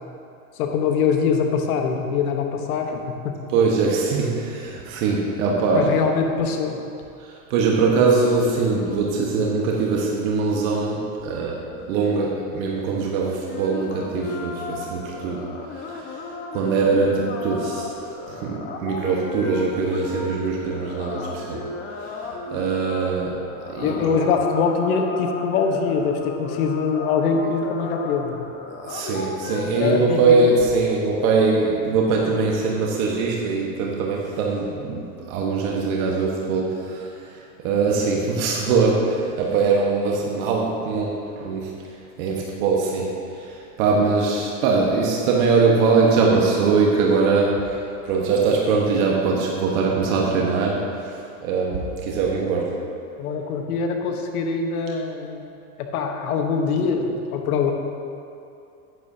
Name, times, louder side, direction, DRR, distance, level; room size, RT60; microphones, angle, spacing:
voice 1, 0.5-3.4 5.7-6.8 23.8-28.5 29.8-30.4 53.2-55.4 55.8-57.7, left 5 dB, 75° left, 3 dB, 1.3 m, -23 dB
voice 2, 3.5-5.9 7.5-11.6 11.9-15.5 15.8-16.2 16.5-17.9 18.3-21.7 22.0-23.4 23.7-24.1 28.8-37.1 37.6-41.7 42.2-43.1 43.4-52.8, right 4 dB, 65° right, -2 dB, 1.4 m, -22 dB
sound 1, 13.5-30.0, left 4 dB, 25° left, 0.9 m, -34 dB
10.5 x 9.2 x 2.8 m, 2.6 s
supercardioid pair, 115°, 44 cm